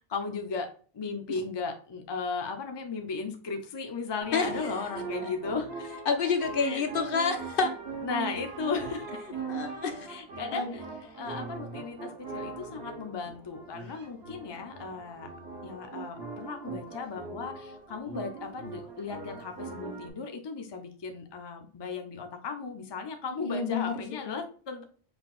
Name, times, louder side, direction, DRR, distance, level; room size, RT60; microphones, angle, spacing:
voice 1, 0.1-0.7 1.0-5.9 6.6-6.8 8.0-9.0 10.1-10.8 11.2-15.3 15.6-17.5 17.9-24.8, left 5 dB, 30° left, 5 dB, 0.6 m, -36 dB
sound 1, 4.2-20.1, right 4 dB, 70° right, 1.4 m, -40 dB
voice 2, 4.3-4.8 5.2-5.3 6.1-7.7 9.5-10.2 10.5-10.7 23.4-24.4, left 5 dB, 60° left, 6 dB, 0.8 m, -29 dB
5.3 x 3.9 x 2.4 m, 0.41 s
omnidirectional pair, 1.1 m